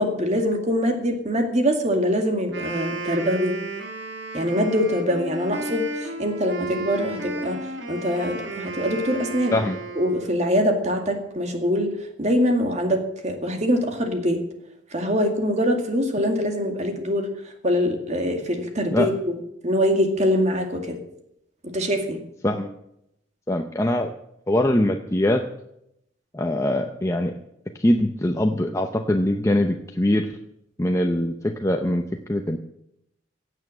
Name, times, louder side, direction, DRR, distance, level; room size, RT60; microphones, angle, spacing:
voice 1, 0.0-3.6 4.3-9.6 10.0-14.4 14.9-17.3 17.6-19.3 19.6-21.0 21.6-22.2, equal, 35° right, 4 dB, 2.2 m, -23 dB
Wind instrument woodwind instrument, 2.4-10.4, right 3 dB, 65° right, 2.6 m, -33 dB
voice 2, 23.5-24.1 24.5-25.4 26.3-27.3 27.8-30.3 30.8-32.0 32.3-32.6, left 1 dB, 15° left, 4 dB, 0.7 m, -22 dB
16.5 x 8.3 x 7.6 m, 0.80 s
head